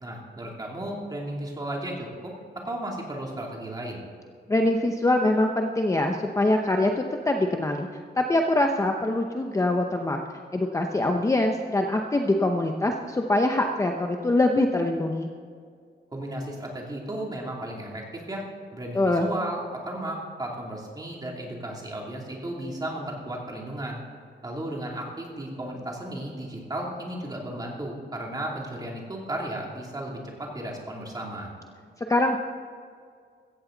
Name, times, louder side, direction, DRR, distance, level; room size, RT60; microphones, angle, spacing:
voice 1, 0.0-2.3 2.6-4.1 16.1-18.4 18.7-24.0 24.4-31.5, right 1 dB, 20° right, -1 dB, 2.8 m, -34 dB
voice 2, 4.5-7.9 8.2-10.2 10.5-15.3 18.9-19.3 32.1-32.4, left 2 dB, 15° left, 3 dB, 0.7 m, -23 dB
16.5 x 14.0 x 3.9 m, 2.1 s
wide cardioid pair, 170°, 18 cm